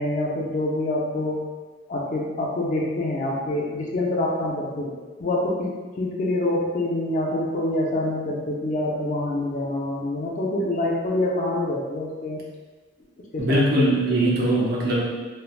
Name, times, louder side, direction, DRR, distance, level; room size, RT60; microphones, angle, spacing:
voice 1, 0.0-1.4 1.9-4.9 5.2-12.4 13.3-13.9, left 1 dB, 45° left, -3 dB, 0.4 m, -26 dB
voice 2, 13.4-15.0, right 1 dB, 55° right, -4 dB, 0.6 m, -21 dB
3.1 x 2.1 x 2.3 m, 1.3 s
head